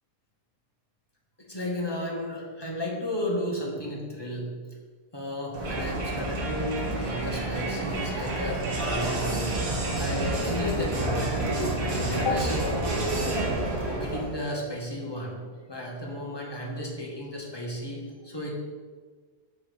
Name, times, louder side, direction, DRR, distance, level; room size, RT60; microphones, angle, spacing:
voice 1, 1.5-4.5 5.1-9.6 10.0-11.5 11.8-12.8 13.9-15.4 15.7-18.5, left 1 dB, 20° left, -2 dB, 0.7 m, -33 dB
Crowd, 5.5-14.4, right 2 dB, 65° right, 1.6 m, -29 dB
5.9 x 4.0 x 5.1 m, 1.5 s
omnidirectional pair, 1.6 m